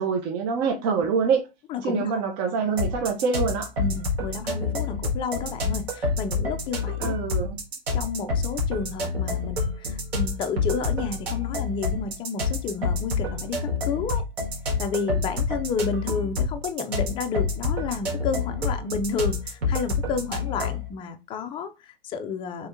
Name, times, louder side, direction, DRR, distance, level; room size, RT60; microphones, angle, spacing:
voice 1, 0.0-1.4 1.8-3.7 7.0-7.6, right 5 dB, 40° right, 0.9 m, -25 dB
voice 2, 1.7-2.1 3.8-7.1 7.9-14.2 14.8-22.7, left 5 dB, 15° left, 0.3 m, -31 dB
sound 1, 2.8-20.9, left 3 dB, 85° right, 1.8 m, -28 dB
3.5 x 2.8 x 3.5 m
hypercardioid pair, 135°, 30 cm